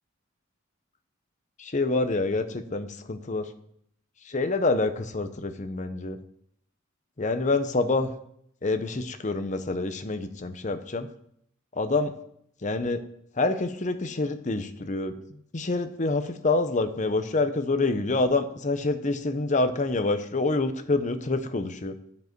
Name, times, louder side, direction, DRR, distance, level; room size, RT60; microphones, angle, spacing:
voice 1, 1.6-3.5 4.2-6.2 7.2-8.1 8.6-11.1 11.7-12.1 12.6-13.0 13.4-15.1 15.5-22.0, left 3 dB, 35° left, 9 dB, 0.7 m, -27 dB
13.0 x 5.4 x 4.6 m, 0.70 s
head